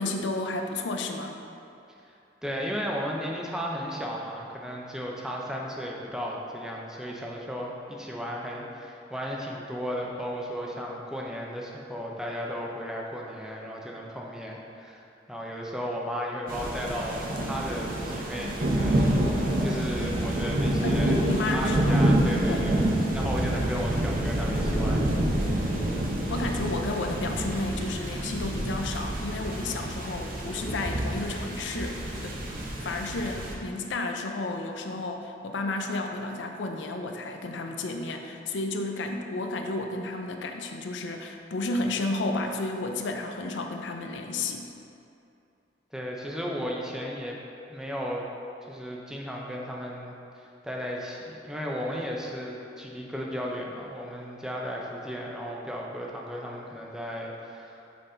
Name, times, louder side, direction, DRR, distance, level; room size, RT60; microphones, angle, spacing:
voice 1, 0.0-1.4 20.8-22.0 22.5-22.7 26.3-32.4 32.8-44.7, left 2 dB, 85° left, 4 dB, 0.5 m, -32 dB
voice 2, 2.4-21.2 21.5-22.8 23.1-25.1 45.9-47.4 47.7-48.2 48.7-57.8, equal, 5° right, -2 dB, 0.6 m, -35 dB
sound 1, 16.5-33.5, right 1 dB, 55° right, 0.8 m, -27 dB
6.6 x 4.0 x 3.8 m, 2.7 s
head